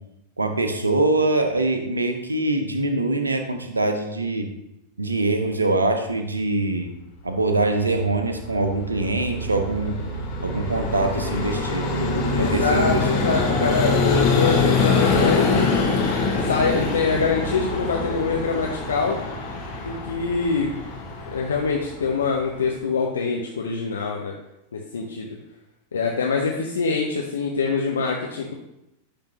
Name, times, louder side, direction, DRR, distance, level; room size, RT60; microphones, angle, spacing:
voice 1, 0.4-4.5 5.0-6.9 7.2-9.9 10.4-13.3, right 2 dB, 80° right, 6 dB, 0.6 m, -24 dB
Vehicle, 8.1-22.8, left 3 dB, 40° left, 1.5 m, -24 dB
voice 2, 12.4-15.7 16.5-19.2 19.8-20.7 21.3-24.3 24.7-25.4 25.9-28.5, left 4 dB, 70° left, 0 dB, 0.6 m, -24 dB
9.7 x 3.5 x 2.9 m, 0.87 s
figure-of-eight pair, 90°, 0 cm